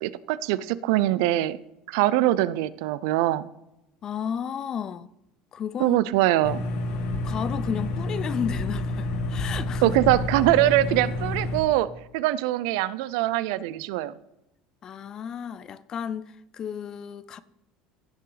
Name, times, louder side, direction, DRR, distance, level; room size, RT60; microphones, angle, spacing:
voice 1, 0.0-1.6 1.9-3.5 5.8-6.6 9.8-14.1, right 15 dB, 75° right, 0.5 m, -23 dB
voice 2, 4.0-5.1 5.5-6.0 7.2-10.0 14.8-17.4, left 8 dB, 25° left, 0.4 m, -33 dB
sound 1, 6.4-11.6, left 2 dB, 60° left, 1.5 m, -29 dB
16.5 x 5.7 x 4.0 m
cardioid pair, 170°, 2 cm